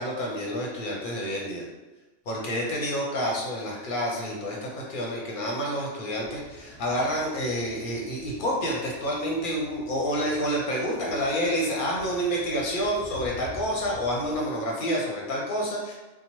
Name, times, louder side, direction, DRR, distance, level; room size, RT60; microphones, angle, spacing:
voice 1, 0.0-1.6 2.3-15.9, equal, 55° left, -3 dB, 0.7 m, -28 dB
sound 1, 6.2-14.4, left 1 dB, 75° right, 1.2 m, -48 dB
2.8 x 2.1 x 2.9 m, 1.2 s
omnidirectional pair, 1.2 m